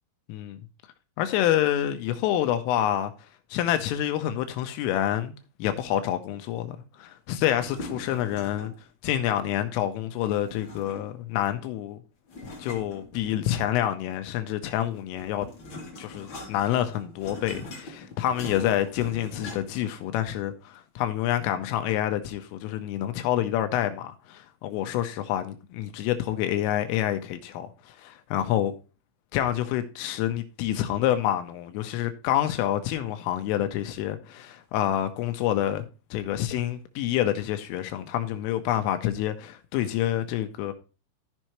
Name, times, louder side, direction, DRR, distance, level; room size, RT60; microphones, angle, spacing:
voice 1, 0.3-0.6 1.2-3.1 3.5-5.3 5.6-8.7 9.0-12.0 12.6-15.5 16.0-28.7 29.3-35.8 36.1-40.7, left 12 dB, 85° left, 3.3 m, -27 dB
sound 1, 7.5-8.8 10.3-11.3 12.3-13.7 14.8-19.9, left 2 dB, 45° left, 1.6 m, -42 dB
14.5 x 5.5 x 3.0 m
omnidirectional pair, 5.9 m